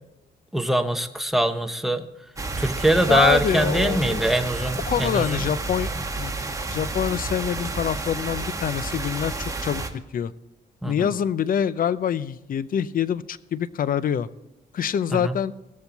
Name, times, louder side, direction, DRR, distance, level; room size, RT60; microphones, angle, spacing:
voice 1, 0.5-2.1 2.6-5.4 6.0-6.1 10.8-11.1 15.1-15.4, right 1 dB, ahead, 7 dB, 0.9 m, -23 dB
sound 1, 2.4-9.9, right 3 dB, 15° right, 1.4 m, -30 dB
voice 2, 3.1-4.2 4.9-6.3 6.7-10.3 10.8-14.3 14.7-15.5, left 8 dB, 45° left, 17 dB, 0.5 m, -25 dB
19.0 x 7.1 x 4.1 m, 0.89 s
cardioid pair, 90°, 20 cm